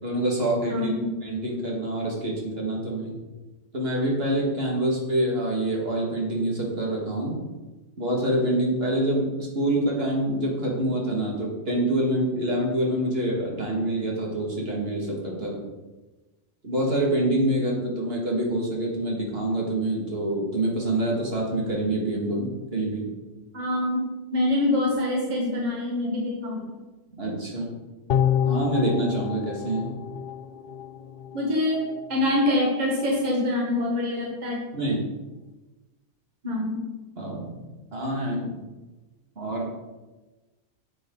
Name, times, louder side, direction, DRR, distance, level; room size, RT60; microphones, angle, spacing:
voice 1, 0.0-0.9 1.2-3.2 3.7-7.4 8.0-15.6 16.6-23.1 27.2-27.7 28.5-30.0 34.7-35.1 37.2-37.6 37.9-38.5 39.4-39.7, right 1 dB, 55° right, -2 dB, 2.3 m, -26 dB
voice 2, 0.7-1.1 23.5-24.0 24.3-26.8 31.3-34.6 36.4-36.9, left 1 dB, 40° right, -2 dB, 1.5 m, -25 dB
sound 1, 28.1-31.4 31.8-31.9, left 9 dB, 60° left, 0.7 m, -27 dB
9.1 x 7.6 x 3.9 m, 1.2 s
omnidirectional pair, 1.2 m